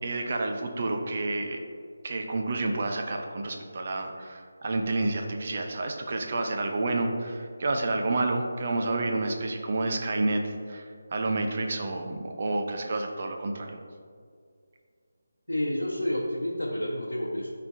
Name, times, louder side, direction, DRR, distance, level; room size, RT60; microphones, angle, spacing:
voice 1, 0.0-1.6 2.0-13.7, right 2 dB, 40° right, 3 dB, 0.8 m, -29 dB
voice 2, 15.5-17.5, left 1 dB, 80° left, -3 dB, 0.9 m, -29 dB
12.5 x 4.4 x 2.7 m, 2.2 s
figure-of-eight pair, 155°, 0 cm